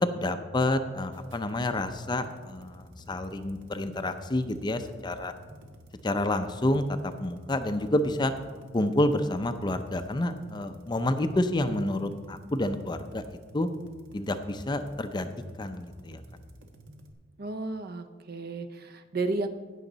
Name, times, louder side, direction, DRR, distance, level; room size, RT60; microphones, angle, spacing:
voice 1, 0.0-5.3 6.0-8.3 8.7-13.2 13.5-13.7 14.1-15.3 15.6-16.2, left 1 dB, 20° left, 9 dB, 0.5 m, -29 dB
sound 1, 1.1-17.1, equal, 80° right, 1.3 m, -51 dB
voice 2, 17.4-19.5, right 3 dB, 50° right, 10 dB, 0.7 m, -33 dB
17.5 x 6.4 x 4.0 m, 1.5 s
head